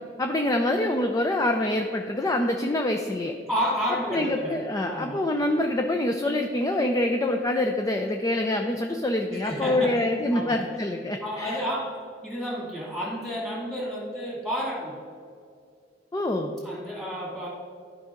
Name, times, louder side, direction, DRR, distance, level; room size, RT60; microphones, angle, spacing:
voice 1, 0.2-3.3 4.1-11.6 16.1-16.6, left 1 dB, 20° left, 4 dB, 0.4 m, -25 dB
voice 2, 3.5-4.6 4.9-5.2 9.3-10.0 10.3-10.6 11.2-12.0 12.2-15.0 16.6-17.5, equal, ahead, -4 dB, 2.4 m, -31 dB
13.0 x 5.3 x 3.7 m, 2.3 s
head